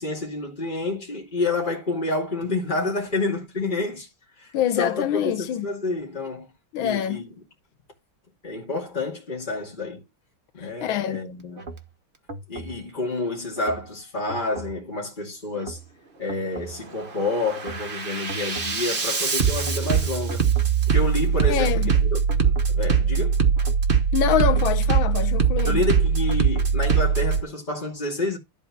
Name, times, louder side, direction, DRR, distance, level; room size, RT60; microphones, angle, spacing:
voice 1, 0.0-4.1 4.4-4.5 4.8-6.5 6.8-7.3 8.4-10.0 10.5-11.7 12.5-15.8 16.2-20.5 20.9-23.4 25.6-28.4, left 2 dB, 20° left, 2.6 m, -29 dB
voice 2, 4.5-5.7 6.7-7.2 10.6-11.2 21.5-22.0 24.1-25.8, left 10 dB, 75° left, 1.5 m, -25 dB
Bass drum, 11.6-11.8 12.3-12.8 13.6-13.8 14.3-14.8 15.6-15.8 16.3-16.8 17.2-27.4, right 6 dB, 30° right, 1.1 m, -22 dB
11.5 x 4.3 x 5.9 m
omnidirectional pair, 2.3 m